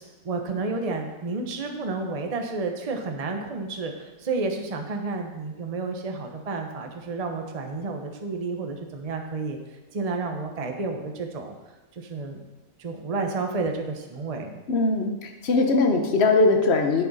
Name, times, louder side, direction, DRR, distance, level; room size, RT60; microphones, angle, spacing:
voice 1, 0.2-9.6 9.9-11.5 12.0-12.5 12.8-14.6, right 3 dB, 30° right, 3 dB, 0.9 m, -31 dB
voice 2, 14.7-17.0, left 3 dB, 50° left, 4 dB, 1.3 m, -21 dB
10.5 x 8.4 x 4.1 m, 1.1 s
omnidirectional pair, 1.5 m